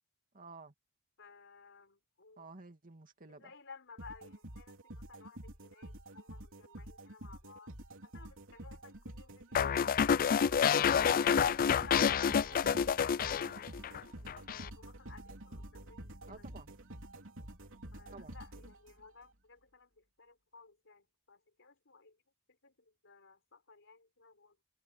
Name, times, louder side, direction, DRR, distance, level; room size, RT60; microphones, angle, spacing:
voice 1, 0.3-0.7 2.4-3.5 9.6-9.9 16.3-16.7 18.1-18.4, right 3 dB, 40° right, 2.4 m, -52 dB
voice 2, 1.2-2.5 3.3-7.7 8.0-9.9 13.8-14.3 14.8-16.5 17.9-19.9 20.2-22.2 22.6-22.7 23.0-24.5, left 4 dB, 60° left, 4.4 m, -56 dB
sound 1, 4.0-19.2, right 1 dB, 65° right, 3.5 m, -49 dB
sound 2, 9.5-14.0 14.3-14.7, left 7 dB, 40° left, 0.4 m, -28 dB
head